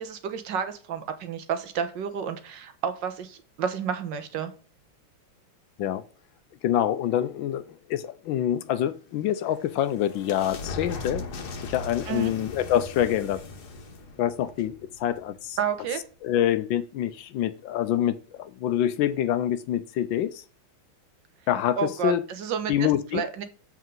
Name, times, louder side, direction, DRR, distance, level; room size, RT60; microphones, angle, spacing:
voice 1, 0.0-4.5 12.1-12.3 15.6-16.0 21.8-23.4, right 7 dB, 65° right, 1.6 m, -30 dB
voice 2, 6.6-11.3 11.6-13.4 14.2-15.6 16.2-20.4 21.5-22.2 22.7-23.2, left 11 dB, 75° left, 1.2 m, -26 dB
sound 1, 9.1-15.6, left 3 dB, 55° left, 1.6 m, -39 dB
7.4 x 6.6 x 3.8 m
omnidirectional pair, 2.3 m